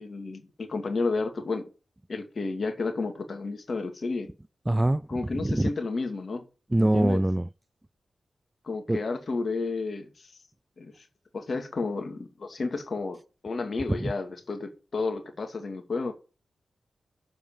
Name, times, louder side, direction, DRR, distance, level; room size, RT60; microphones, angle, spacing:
voice 1, 0.0-1.7 2.1-4.3 5.1-6.4 6.8-7.2 8.6-10.3 10.8-11.1 11.3-13.2 13.4-16.1, left 3 dB, 55° left, 2.4 m, -31 dB
voice 2, 4.7-5.1 5.4-5.7 6.7-7.5 8.9-9.0 13.9-14.1, right 1 dB, 15° right, 0.3 m, -23 dB
7.3 x 5.2 x 6.9 m
cardioid pair, 55°, 0 cm